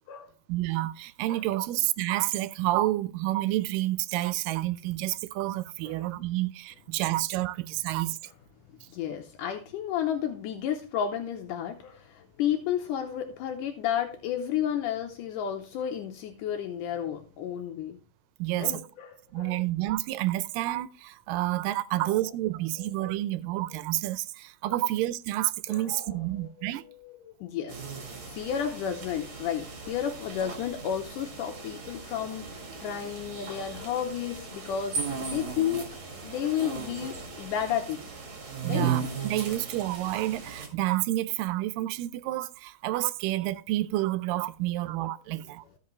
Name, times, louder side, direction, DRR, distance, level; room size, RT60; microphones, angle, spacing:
voice 1, 0.5-8.2 18.4-18.8 19.3-26.8 38.6-45.6, right 16 dB, 85° right, 2.2 m, -29 dB
voice 2, 1.3-1.6 5.9-6.0 8.9-18.0 18.6-19.6 22.0-22.2 23.0-23.2 24.7-24.8 25.7-26.1 26.6-26.7 27.0-27.8 28.2-35.9 36.2-38.0 38.7-38.9 39.5-39.6, left 9 dB, 80° left, 2.2 m, -32 dB
sound 1, 27.7-40.7, right 6 dB, 40° right, 2.6 m, -37 dB
15.0 x 5.3 x 3.2 m
omnidirectional pair, 3.8 m